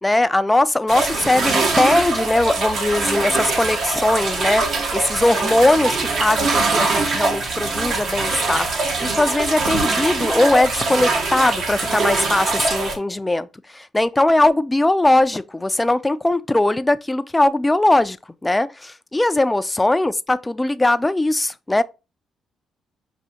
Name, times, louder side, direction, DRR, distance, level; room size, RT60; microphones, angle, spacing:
voice 1, 0.0-13.5 13.7-18.2 18.4-21.8, left 2 dB, 15° left, 0.3 m, -20 dB
sound 1, 0.9-12.9, right 3 dB, 65° right, 1.2 m, -22 dB
6.0 x 2.7 x 2.8 m
cardioid pair, 90°, 0 cm